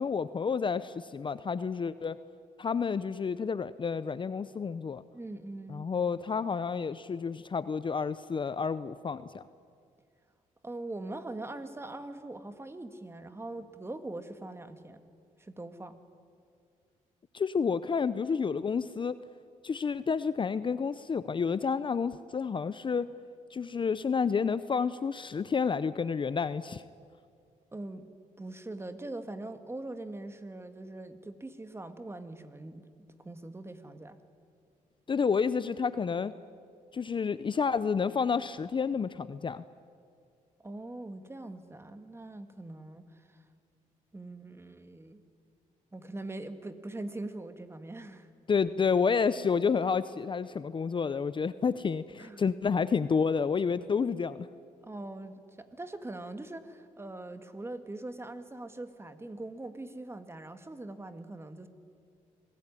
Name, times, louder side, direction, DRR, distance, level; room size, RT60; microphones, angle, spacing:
voice 1, 0.0-2.2 2.6-5.0 5.7-9.4 17.3-19.2 19.6-23.1 23.5-26.8 35.1-36.3 36.9-39.6 48.5-54.5, left 5 dB, 35° left, 15 dB, 0.7 m, -30 dB
voice 2, 5.1-5.9 10.6-15.0 15.4-16.0 27.7-28.1 28.4-32.8 33.2-34.2 40.6-43.4 44.1-45.2 45.9-48.3 52.2-52.4 54.8-61.7, right 2 dB, 15° right, 9 dB, 2.0 m, -42 dB
26.0 x 19.5 x 10.0 m, 2.3 s
cardioid pair, 90°, 14 cm